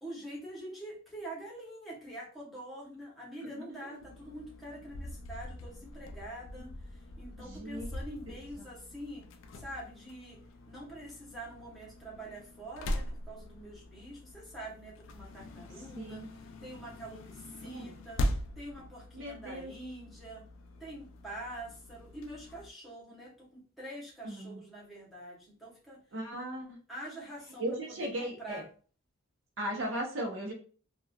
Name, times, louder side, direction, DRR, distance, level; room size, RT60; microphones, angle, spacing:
voice 1, 0.0-9.3 9.5-18.3 18.6-20.4 20.8-26.0 26.9-28.6, right 1 dB, ahead, -6 dB, 0.9 m, -45 dB
sound 1, 4.0-22.7, left 1 dB, 65° left, 0.3 m, -42 dB
voice 2, 7.5-7.9 8.6-8.7 15.9-16.3 17.6-17.9 19.1-19.7 24.2-24.6 26.1-26.8 27.6-28.6 29.6-30.5, right 1 dB, 60° right, 1 dB, 0.7 m, -37 dB
3.0 x 2.3 x 2.3 m, 0.40 s
head